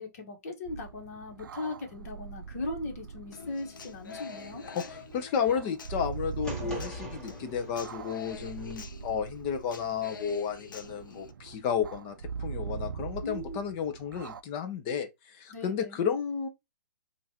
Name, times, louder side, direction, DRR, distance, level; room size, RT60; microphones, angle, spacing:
voice 1, 0.0-4.6 6.6-6.8 13.2-13.6 15.5-16.0, left 2 dB, 50° left, 1.3 m, -38 dB
sound 1, 0.6-14.4, right 6 dB, 85° right, 0.4 m, -42 dB
Human voice / Acoustic guitar, 3.3-11.3, left 5 dB, 80° left, 0.7 m, -47 dB
voice 2, 4.7-16.5, left 7 dB, 25° left, 0.6 m, -32 dB
sound 2, 6.4-8.7, equal, 5° left, 1.3 m, -43 dB
5.2 x 2.6 x 2.9 m
hypercardioid pair, 155°, 11 cm